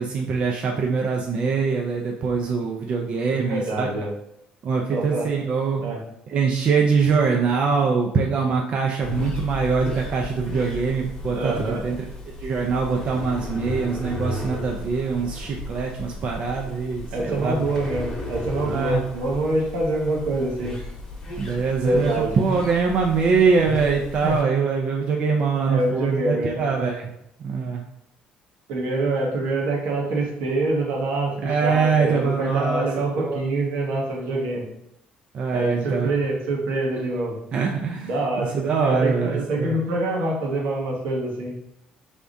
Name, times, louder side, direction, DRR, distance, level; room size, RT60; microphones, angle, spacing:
voice 1, 0.0-3.9 4.6-5.8 6.3-12.1 12.4-17.6 18.7-19.0 21.4-27.1 27.4-27.8 31.4-32.9 33.2-33.4 35.3-36.1 37.5-38.1 38.5-39.8, right 5 dB, 40° right, 0 dB, 0.4 m, -23 dB
voice 2, 3.3-4.1 4.9-5.3 5.8-6.0 11.3-11.8 17.1-20.7 21.8-22.4 24.2-24.5 25.7-26.8 28.7-34.6 35.5-37.4 38.0-38.5 38.8-41.5, right 2 dB, 85° right, -2 dB, 1.2 m, -25 dB
sound 1, 9.0-24.4, left 1 dB, 20° left, 1.1 m, -34 dB
4.6 x 3.5 x 2.6 m, 0.78 s
cardioid pair, 160°, 3 cm